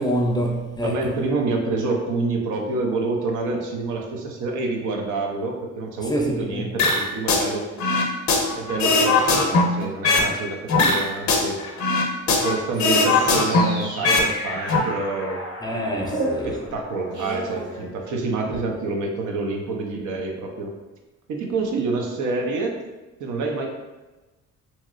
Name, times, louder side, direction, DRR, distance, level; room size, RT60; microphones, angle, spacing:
voice 1, 0.0-1.0 6.1-6.6 15.6-16.5, equal, 15° left, 0 dB, 0.5 m, -25 dB
voice 2, 0.8-7.7 8.5-11.6 12.3-15.4 16.4-20.7 21.3-22.8 23.2-23.7, right 3 dB, 75° right, 1 dB, 0.6 m, -27 dB
sound 1, 6.8-7.5 7.8-10.3 10.7-12.5 12.8-14.3 14.6-14.8, left 3 dB, 65° left, 0.6 m, -19 dB
sound 2, 12.7-18.4, right 1 dB, 60° right, 1.4 m, -33 dB
2.8 x 2.8 x 2.5 m, 1.1 s
cardioid pair, 90°, 30 cm